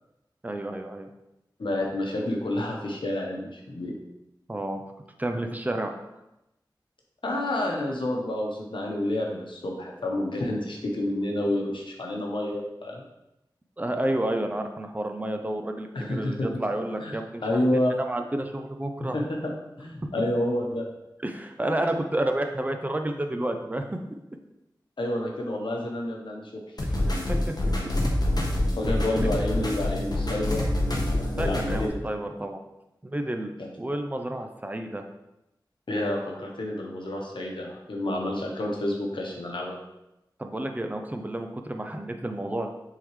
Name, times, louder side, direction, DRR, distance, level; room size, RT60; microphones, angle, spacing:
voice 1, 0.4-1.1 4.5-4.8 5.2-5.9 13.8-17.6 18.0-19.2 21.2-23.8 26.9-27.6 31.4-32.6 33.0-33.5 33.8-35.0 40.4-42.7, right 1 dB, 20° right, 5 dB, 0.6 m, -30 dB
voice 2, 1.6-3.9 7.2-13.0 15.9-16.5 17.0-17.1 17.4-17.9 19.0-20.8 21.7-21.8 25.0-26.5 27.0-27.1 28.8-30.7 31.1-31.9 33.6-33.7 35.9-39.8, left 1 dB, 85° left, -1 dB, 1.1 m, -29 dB
sound 1, 26.8-31.9, left 1 dB, 55° left, 1.2 m, -26 dB
7.7 x 3.8 x 3.2 m, 0.90 s
wide cardioid pair, 50°, 8 cm